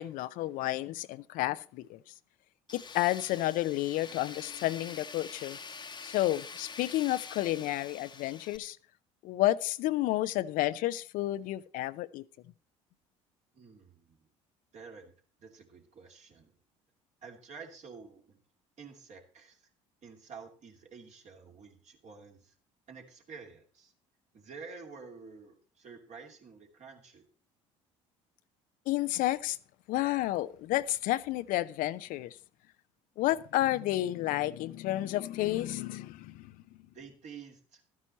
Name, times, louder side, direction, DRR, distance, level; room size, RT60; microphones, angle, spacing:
voice 1, 0.0-2.0 2.7-5.6 6.0-8.8 9.2-12.2 28.9-29.6 29.9-32.4 33.2-36.5, left 15 dB, 60° left, 0.5 m, -31 dB
Tools, 2.7-8.6, left 5 dB, 30° left, 1.0 m, -46 dB
voice 2, 13.5-14.3 14.7-15.1 15.4-16.5 17.2-18.4 18.8-19.7 20.0-22.5 22.9-23.9 24.3-27.2 36.9-37.8, right 5 dB, 50° right, 2.6 m, -50 dB
12.5 x 9.5 x 4.2 m
hypercardioid pair, 65°, 16 cm